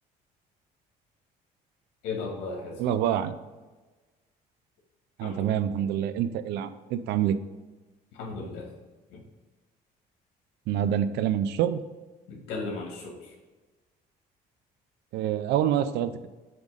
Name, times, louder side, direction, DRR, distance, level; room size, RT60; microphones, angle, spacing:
voice 1, 2.0-2.8 5.2-5.5 8.1-8.7 9.1-9.2 12.3-13.3, left 3 dB, 90° left, -1 dB, 2.4 m, -35 dB
voice 2, 2.8-3.4 5.2-7.4 10.7-11.8 15.1-16.3, right 10 dB, 80° right, 12 dB, 0.6 m, -26 dB
7.9 x 3.6 x 5.2 m, 1.3 s
cardioid pair, 110°, 17 cm